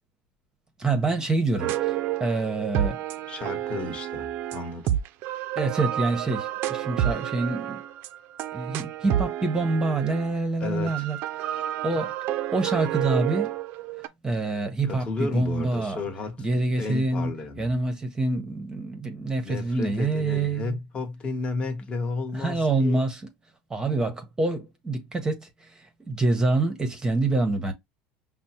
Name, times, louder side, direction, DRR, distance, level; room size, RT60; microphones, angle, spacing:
voice 1, 0.8-3.0 5.6-7.8 8.5-11.2 11.8-12.1 12.5-13.5 14.2-16.0 16.4-17.3 17.6-20.8 22.3-23.2 23.7-27.7, right 2 dB, 15° right, 0.8 m, -26 dB
sound 1, 1.6-10.3 10.9-14.1, right 12 dB, 60° right, 0.4 m, -30 dB
voice 2, 3.3-4.9 10.6-11.1 14.9-17.7 19.4-23.0, left 3 dB, 25° left, 1.1 m, -33 dB
5.2 x 2.0 x 2.8 m
supercardioid pair, 115°, 4 cm